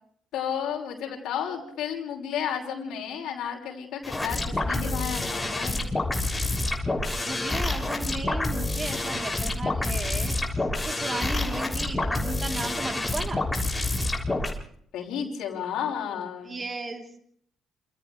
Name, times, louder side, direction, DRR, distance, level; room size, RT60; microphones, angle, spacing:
voice 1, 0.3-5.9 14.9-16.6, left 8 dB, 65° left, -1 dB, 5.8 m, -32 dB
sound 1, 4.0-14.5, left 2 dB, 15° left, 6.8 m, -28 dB
voice 2, 7.3-10.4 10.8-13.5 16.4-17.2, right 3 dB, 30° right, 3 dB, 3.8 m, -35 dB
28.5 x 28.5 x 3.5 m, 0.65 s
hypercardioid pair, 50°, 0 cm